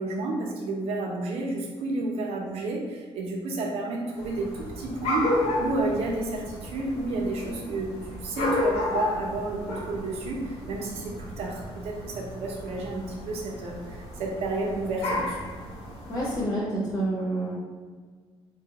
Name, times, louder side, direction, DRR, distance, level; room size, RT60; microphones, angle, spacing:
voice 1, 0.0-15.4, right 2 dB, 80° right, -1 dB, 0.8 m, -31 dB
sound 1, 4.2-16.4, left 1 dB, 90° left, 0.8 m, -32 dB
voice 2, 16.1-17.5, right 1 dB, 35° left, -6 dB, 1.0 m, -28 dB
4.6 x 2.3 x 2.9 m, 1.5 s
cardioid pair, 150°, 10 cm